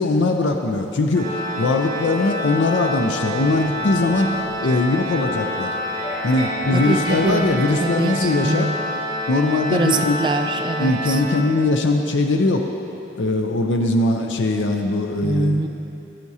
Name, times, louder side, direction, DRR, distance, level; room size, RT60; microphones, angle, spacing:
voice 1, 0.0-5.7 6.2-8.7 9.3-10.2 10.8-12.6 13.2-15.6, left 2 dB, 80° left, 4 dB, 0.5 m, -20 dB
Organ, 1.1-11.9, left 1 dB, 45° right, 1.5 m, -28 dB
sound 1, 2.8-8.3, equal, 35° left, 1.8 m, -34 dB
voice 2, 6.7-7.5 7.8-8.8 9.7-11.2 15.2-15.7, right 2 dB, 25° right, 6 dB, 0.3 m, -23 dB
15.5 x 5.8 x 2.8 m, 2.9 s
head